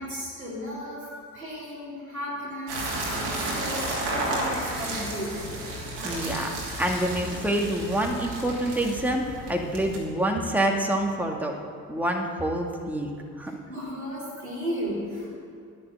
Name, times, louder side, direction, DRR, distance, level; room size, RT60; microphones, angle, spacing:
voice 1, 0.0-5.5 13.5-15.4, equal, 90° right, -7 dB, 3.2 m, -35 dB
sound 1, 2.7-10.0, right 1 dB, 70° right, 2.9 m, -32 dB
voice 2, 6.0-11.6 11.9-13.1 13.4-13.6, right 1 dB, 5° right, 1 dB, 2.0 m, -27 dB
11.5 x 11.5 x 7.7 m, 2.3 s
figure-of-eight pair, 45°, 41 cm